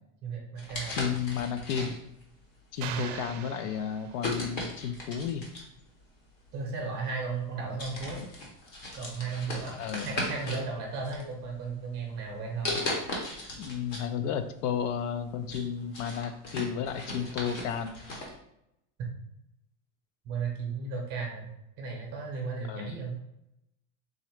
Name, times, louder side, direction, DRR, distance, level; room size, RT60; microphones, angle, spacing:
voice 1, 0.2-1.0 2.7-3.5 6.5-8.2 8.9-12.8 20.2-21.5 21.8-23.2, right 4 dB, 25° right, 0 dB, 0.7 m, -35 dB
sound 1, 0.6-2.2 2.9-3.2 4.2-5.8 6.8-6.9 7.4-7.5 7.8-10.7 11.0-11.8 12.6-14.1 14.4-14.5 15.0-18.3, left 1 dB, 25° left, 0.6 m, -37 dB
voice 2, 0.9-2.0 2.7-5.5 9.8-10.1 13.6-18.0 22.7-22.9, left 8 dB, 75° left, 10 dB, 0.5 m, -32 dB
sound 2, 2.8-4.5, right 9 dB, 75° right, 0.5 m, -41 dB
3.7 x 2.1 x 4.3 m, 0.83 s
supercardioid pair, 180°, 38 cm